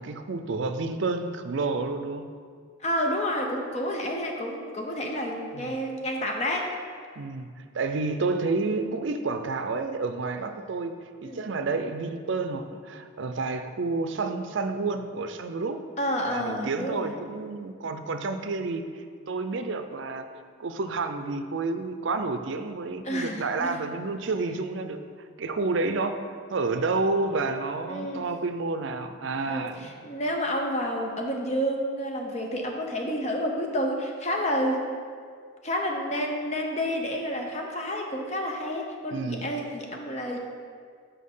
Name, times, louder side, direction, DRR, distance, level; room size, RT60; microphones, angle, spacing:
voice 1, 0.0-2.3 5.5-5.8 7.2-7.5 7.7-15.8 16.2-20.3 20.6-26.2 26.5-29.9 39.1-39.5, right 3 dB, 65° right, 8 dB, 0.5 m, -30 dB
voice 2, 2.8-6.7 11.2-11.5 16.0-17.1 23.0-23.8 27.9-28.2 29.5-35.0 35.6-40.4, equal, 35° left, 1 dB, 0.8 m, -29 dB
6.4 x 5.5 x 5.5 m, 2.1 s
head